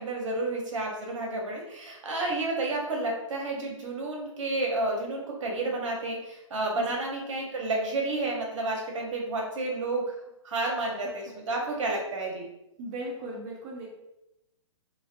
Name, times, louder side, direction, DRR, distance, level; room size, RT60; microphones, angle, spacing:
voice 1, 0.0-10.2 10.4-12.5, right 2 dB, 70° right, 0 dB, 0.8 m, -31 dB
voice 2, 12.8-13.9, right 1 dB, 20° right, -3 dB, 0.4 m, -37 dB
2.4 x 2.1 x 2.5 m, 0.89 s
hypercardioid pair, 145°, 17 cm